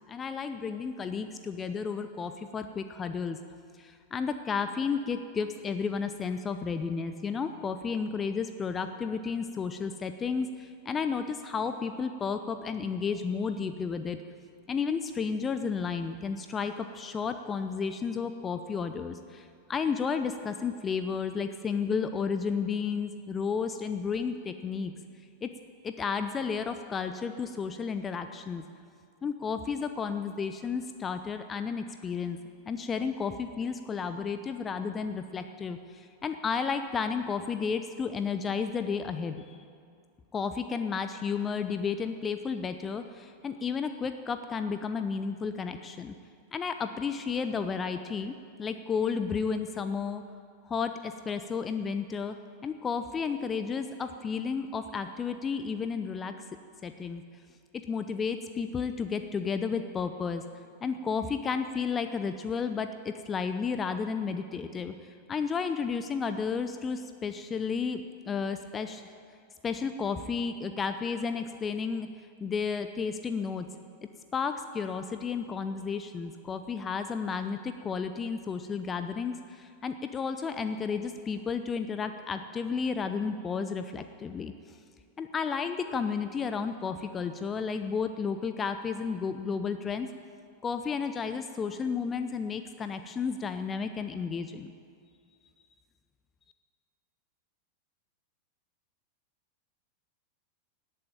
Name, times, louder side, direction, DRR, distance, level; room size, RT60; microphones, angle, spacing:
voice 1, 0.1-3.4 3.8-14.2 14.7-24.9 25.4-25.5 25.8-28.6 29.2-32.4 32.7-39.6 40.3-46.1 46.5-50.2 50.7-52.4 52.6-56.3 56.8-57.2 57.7-60.4 60.8-69.1 69.6-72.1 72.4-73.7 74.3-84.8 85.2-90.1 90.6-94.7, left 5 dB, 20° left, 9 dB, 0.7 m, -32 dB
17.5 x 9.3 x 8.9 m, 2.3 s
figure-of-eight pair, 90°, 0 cm